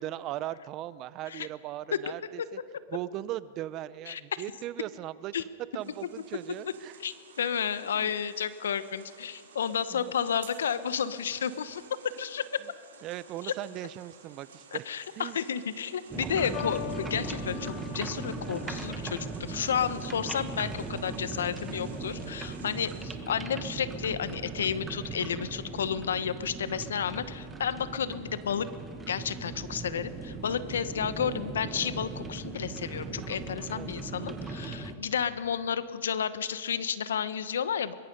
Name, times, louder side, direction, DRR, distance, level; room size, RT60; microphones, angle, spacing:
voice 1, 0.0-2.6 2.9-5.5 5.7-7.0 7.9-8.1 9.9-10.1 13.0-14.8 15.2-15.4 33.7-33.9, right 13 dB, 40° right, 17 dB, 0.7 m, -38 dB
sound 1, 5.8-23.0, right 6 dB, 80° right, 4.5 m, -54 dB
voice 2, 7.0-12.6 13.4-13.5 14.7-28.7 29.1-37.9, left 8 dB, 80° left, 14 dB, 1.0 m, -31 dB
sound 2, 16.1-34.9, right 4 dB, 15° right, 1.7 m, -38 dB
sound 3, 16.5-23.0 23.9-24.3, left 16 dB, 50° left, 0.7 m, -45 dB
23.0 x 22.0 x 5.4 m, 2.3 s
hypercardioid pair, 120°, 0 cm